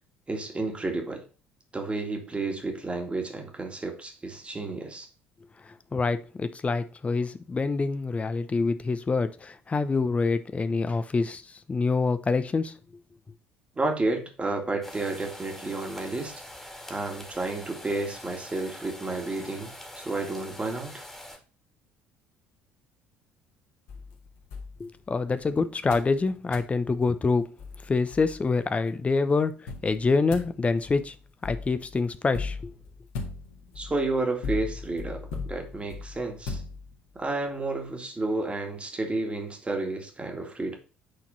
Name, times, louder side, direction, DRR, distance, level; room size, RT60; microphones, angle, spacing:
voice 1, 0.3-1.2 1.7-5.1 13.8-16.4 16.9-21.0 33.8-36.6 37.2-40.8, right 2 dB, 20° right, 2.1 m, -31 dB
voice 2, 5.7-12.8 24.8-27.5 27.9-31.2 31.4-32.6, left 4 dB, 25° left, 0.8 m, -26 dB
sound 1, 14.8-21.4, left 1 dB, 5° left, 2.0 m, -44 dB
sound 2, 23.9-25.4 25.9-26.2 26.5-26.8 27.3-27.4 27.6-28.7 29.7-37.2, left 4 dB, 60° left, 1.8 m, -38 dB
8.9 x 4.3 x 4.0 m
figure-of-eight pair, 55°, 6 cm